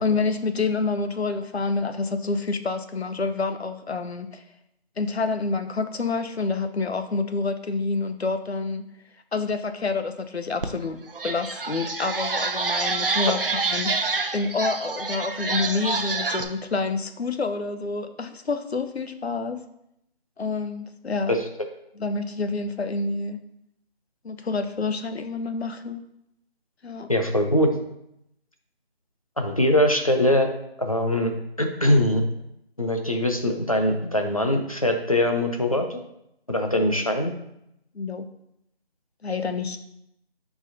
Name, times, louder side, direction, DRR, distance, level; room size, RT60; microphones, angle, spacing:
voice 1, 0.0-4.4 5.0-8.8 9.3-19.6 20.4-21.3 22.0-23.4 24.2-26.0 26.8-27.1 37.9-38.3 39.2-39.8, left 4 dB, 85° left, 9 dB, 0.8 m, -28 dB
sound 1, 10.6-10.7 11.1-16.4, right 3 dB, 60° right, 0.7 m, -27 dB
voice 2, 27.1-27.7 29.4-30.5 30.8-31.3 31.6-32.2 32.8-36.0 36.5-37.3, left 1 dB, 35° left, 4 dB, 0.6 m, -22 dB
7.4 x 4.8 x 2.7 m, 0.80 s
figure-of-eight pair, 175°, 31 cm